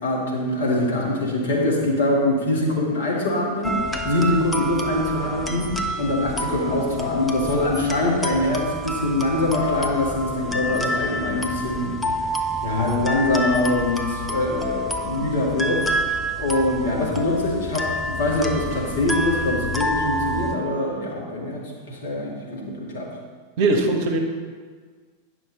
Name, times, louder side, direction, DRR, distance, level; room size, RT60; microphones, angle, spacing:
voice 1, 0.0-3.8 4.0-12.3 12.6-15.9 16.4-23.1, left 1 dB, 60° left, -3 dB, 2.3 m, -23 dB
sound 1, 3.6-20.6, equal, 5° left, 0.8 m, -28 dB
voice 2, 23.6-24.2, right 3 dB, 45° right, 4 dB, 1.2 m, -20 dB
10.0 x 6.0 x 4.1 m, 1.6 s
figure-of-eight pair, 90°, 0 cm